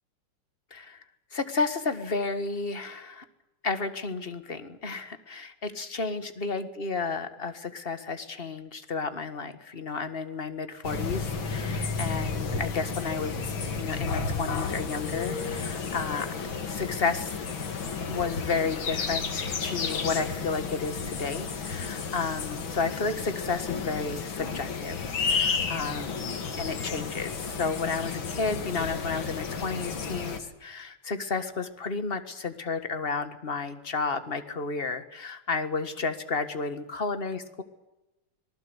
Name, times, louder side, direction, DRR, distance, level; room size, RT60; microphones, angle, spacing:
voice 1, 0.7-1.0 1.3-3.2 3.6-13.3 13.7-16.3 16.7-17.4 18.1-26.3 26.6-37.6, left 4 dB, 30° left, 10 dB, 1.7 m, -32 dB
sound 1, 10.8-30.4, left 5 dB, 65° left, 2.7 m, -32 dB
25.5 x 20.0 x 8.1 m, 0.99 s
omnidirectional pair, 2.3 m